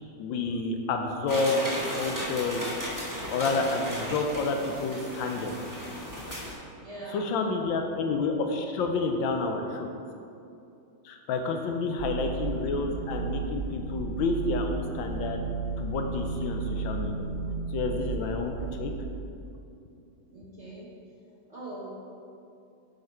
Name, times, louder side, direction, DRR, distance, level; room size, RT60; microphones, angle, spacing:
voice 1, 0.2-2.7 3.3-5.5 6.3-6.4 7.1-9.9 11.0-15.4 15.8-17.1 17.7-18.9, left 3 dB, 75° left, 4 dB, 1.3 m, -29 dB
sound 1, 1.3-6.5, equal, 15° right, 0.9 m, -35 dB
voice 2, 6.8-8.0 12.0-12.2 20.3-20.9 21.3-21.9, right 1 dB, 50° right, -5 dB, 0.8 m, -43 dB
sound 2, 12.0-19.1, right 4 dB, 75° right, 1.0 m, -33 dB
7.3 x 5.5 x 4.4 m, 2.6 s
omnidirectional pair, 2.2 m